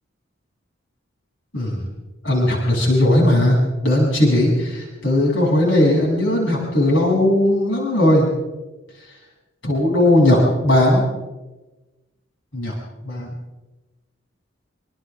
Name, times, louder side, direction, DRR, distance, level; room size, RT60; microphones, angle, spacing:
voice 1, 1.5-1.9 2.2-8.3 9.1-9.2 9.6-11.1 12.5-12.7 13.0-13.3, left 1 dB, 70° left, -2 dB, 7.7 m, -17 dB
27.0 x 26.5 x 3.7 m, 1.1 s
head